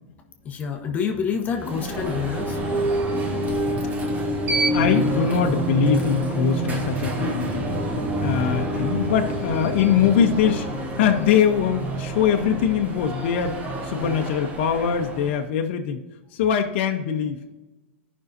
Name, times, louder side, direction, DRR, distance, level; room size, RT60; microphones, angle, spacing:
voice 1, 0.4-2.6, left 6 dB, 25° left, 3 dB, 0.9 m, -27 dB
Alarm, 1.5-15.5, right 2 dB, 20° right, 1.2 m, -32 dB
sound 1, 1.6-14.3, right 1 dB, 5° left, 1.6 m, -28 dB
voice 2, 4.7-7.7 8.2-10.7 11.0-13.6 13.8-16.0 16.3-17.4, left 8 dB, 55° left, 4 dB, 0.8 m, -22 dB
13.5 x 5.5 x 2.7 m, 1.1 s
hypercardioid pair, 135°, 7 cm